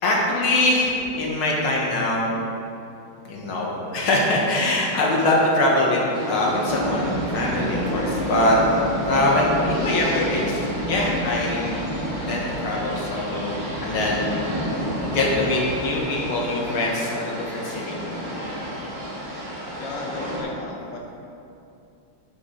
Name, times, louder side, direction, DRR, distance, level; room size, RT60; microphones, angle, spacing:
voice 1, 0.0-2.3 3.3-8.6 9.0-11.8 12.3-13.6 13.8-14.3 15.1-18.0, left 1 dB, 90° left, -3 dB, 2.3 m, -23 dB
sound 1, 6.1-20.4, equal, 45° right, 2.0 m, -29 dB
voice 2, 19.8-21.1, left 3 dB, 65° left, 0 dB, 1.4 m, -35 dB
11.0 x 6.1 x 3.9 m, 2.7 s
omnidirectional pair, 2.3 m